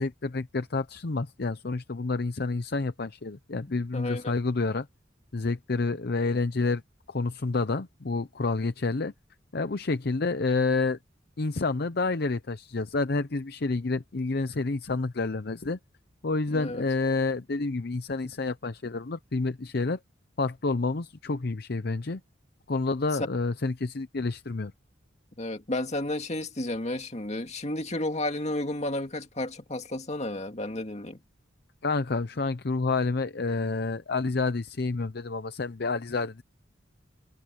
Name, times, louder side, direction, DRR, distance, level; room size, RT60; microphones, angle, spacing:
voice 1, 0.0-4.9 5.3-6.8 7.1-9.1 9.5-11.0 11.4-15.8 16.2-20.0 20.4-22.2 22.7-24.7 31.8-36.4, left 3 dB, 55° left, 0.7 m, -29 dB
voice 2, 3.7-4.3 16.5-16.8 18.2-18.3 25.4-31.2, left 1 dB, 35° left, 2.2 m, -32 dB
head